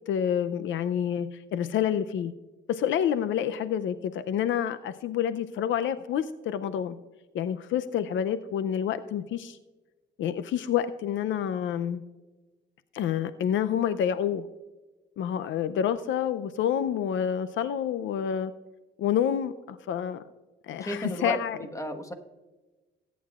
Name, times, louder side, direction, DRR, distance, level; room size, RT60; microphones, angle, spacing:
voice 1, 0.1-2.3 2.7-7.0 7.3-9.6 10.2-12.0 12.9-14.4 15.2-18.5 19.0-20.2 20.7-21.6, left 9 dB, 75° left, 12 dB, 0.5 m, -28 dB
voice 2, 20.8-22.1, equal, 15° left, 6 dB, 1.3 m, -33 dB
18.5 x 9.3 x 2.4 m, 1.2 s
cardioid pair, 90°, 20 cm